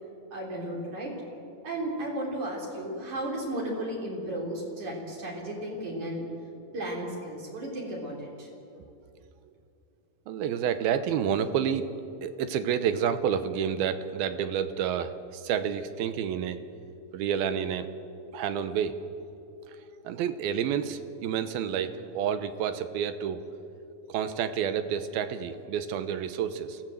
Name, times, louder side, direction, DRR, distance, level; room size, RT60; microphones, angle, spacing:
voice 1, 0.3-1.1 1.6-6.3 6.7-8.5, right 1 dB, 50° right, -3 dB, 5.1 m, -34 dB
voice 2, 10.3-11.9 12.2-16.6 17.1-17.9 18.3-19.0 19.7-23.4 24.1-26.8, right 8 dB, 80° right, 10 dB, 2.9 m, -29 dB
27.5 x 16.5 x 7.9 m, 2.7 s
omnidirectional pair, 4.3 m